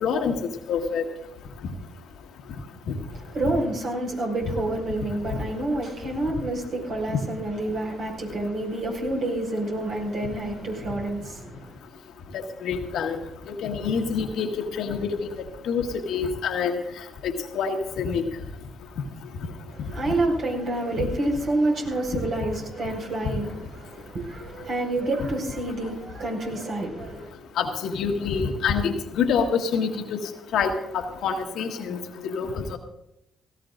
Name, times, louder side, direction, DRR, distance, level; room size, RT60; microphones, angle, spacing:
voice 1, 0.0-1.0 2.9-3.0 5.3-5.4 7.1-7.2 12.3-13.2 13.5-15.3 15.7-16.7 17.2-18.2 27.6-30.2 30.5-32.0 32.3-32.8, left 6 dB, 70° left, 1.6 m, -26 dB
voice 2, 3.3-11.7 19.7-27.3, right 2 dB, 60° right, 5.6 m, -28 dB
18.0 x 16.5 x 2.6 m
hypercardioid pair, 50°, 0 cm